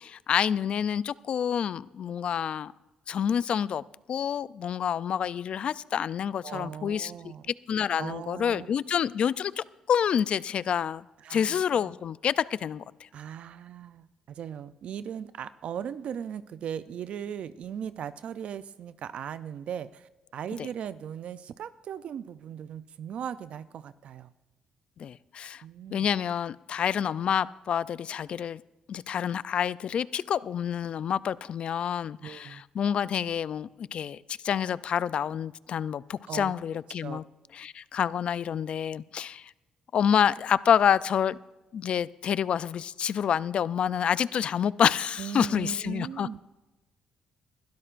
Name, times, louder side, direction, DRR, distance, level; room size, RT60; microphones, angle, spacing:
voice 1, 0.0-2.7 3.1-7.1 7.7-11.0 11.3-12.8 25.0-25.6 25.9-28.6 28.9-34.2 34.4-37.2 37.6-39.4 39.9-41.4 41.7-46.3, left 8 dB, 55° left, 19 dB, 0.3 m, -28 dB
voice 2, 6.4-7.5 8.0-8.8 11.2-11.9 13.1-24.3 25.6-26.1 32.2-32.6 36.3-36.5 37.0-37.2 45.2-46.4, right 8 dB, 65° right, 14 dB, 0.4 m, -38 dB
21.0 x 12.5 x 2.5 m, 1.1 s
cardioid pair, 100°, 2 cm